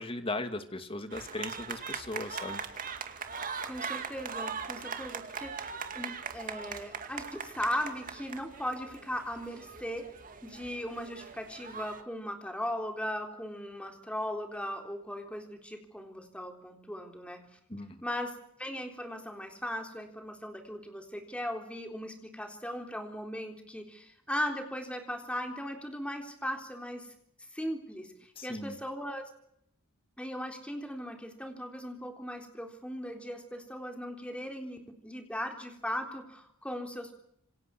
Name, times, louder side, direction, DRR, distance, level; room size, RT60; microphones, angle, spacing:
voice 1, 0.0-2.6 17.7-18.0 28.4-28.8, left 2 dB, 25° left, 8 dB, 2.3 m, -37 dB
sound 1, 1.1-12.0, right 5 dB, 40° right, 2.3 m, -40 dB
voice 2, 3.7-10.1 10.4-17.6 18.0-27.1 27.5-29.2 30.2-34.8 35.0-37.1, equal, 5° left, 4 dB, 3.7 m, -38 dB
27.5 x 25.5 x 6.1 m, 0.74 s
head